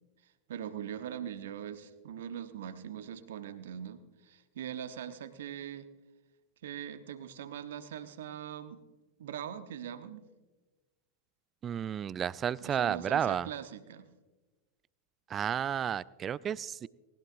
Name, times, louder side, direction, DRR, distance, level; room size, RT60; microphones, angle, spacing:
voice 1, 0.5-5.9 6.6-8.8 9.2-10.2 12.6-14.1, right 9 dB, 60° right, 11 dB, 1.0 m, -41 dB
voice 2, 11.6-13.5 15.3-16.9, right 9 dB, 25° right, 22 dB, 0.3 m, -32 dB
19.5 x 19.0 x 2.6 m, 1.2 s
figure-of-eight pair, 90°, 0 cm